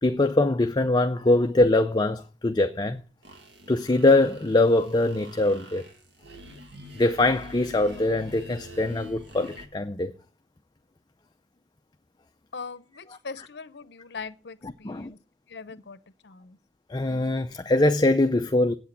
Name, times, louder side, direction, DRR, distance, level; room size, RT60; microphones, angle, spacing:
voice 1, 0.0-3.0 3.7-5.9 7.0-10.1 14.8-15.1 16.9-18.7, left 2 dB, 25° left, 0.5 m, -22 dB
sound 1, 3.2-9.7, equal, 65° right, 2.0 m, -45 dB
voice 2, 12.5-15.2 15.5-16.6, left 4 dB, 65° left, 0.7 m, -41 dB
8.4 x 8.2 x 8.3 m
head